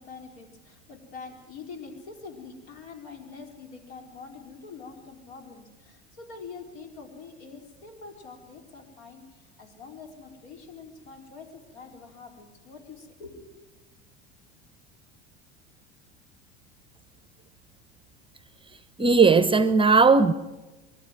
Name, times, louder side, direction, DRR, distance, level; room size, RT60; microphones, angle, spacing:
voice 1, 0.0-13.5, left 4 dB, 70° left, 4.4 m, -45 dB
voice 2, 19.0-20.3, right 4 dB, 15° right, 0.9 m, -17 dB
25.0 x 12.5 x 9.2 m
hypercardioid pair, 85°, 33 cm